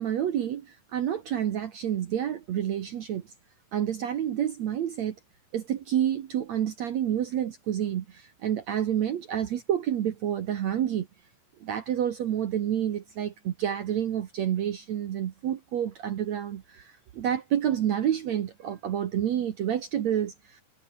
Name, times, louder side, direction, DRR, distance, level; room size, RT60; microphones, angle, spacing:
voice 1, 0.0-3.3 3.7-5.1 5.5-11.1 11.6-20.6, right 10 dB, 75° right, 1.6 m, -29 dB
omnidirectional pair, 5.1 m